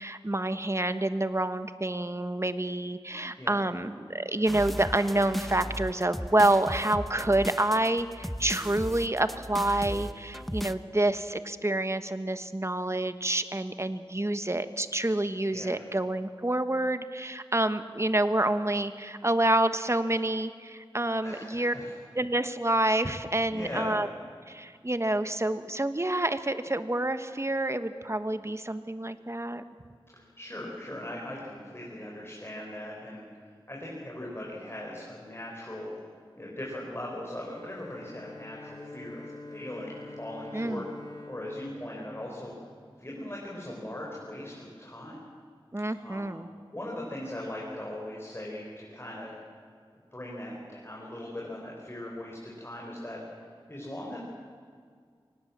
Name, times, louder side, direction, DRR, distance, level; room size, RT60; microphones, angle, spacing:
voice 1, 0.0-21.7 22.1-24.1 24.5-29.6 40.5-40.8 45.7-46.5, right 1 dB, 30° right, 10 dB, 1.3 m, -28 dB
sound 1, 4.5-10.7, equal, ahead, 0.9 m, -37 dB
voice 2, 15.5-15.8 21.2-22.0 23.5-24.0 30.1-33.3 33.7-35.9 36.4-40.8 41.3-42.5 43.0-45.2 46.0-46.3 46.7-49.4 50.1-53.2 53.7-54.2, left 1 dB, 25° left, -3 dB, 4.8 m, -39 dB
Bowed string instrument, 37.3-43.0, left 2 dB, 40° left, 3.7 m, -46 dB
25.0 x 18.5 x 7.5 m, 2.1 s
wide cardioid pair, 45°, 10 cm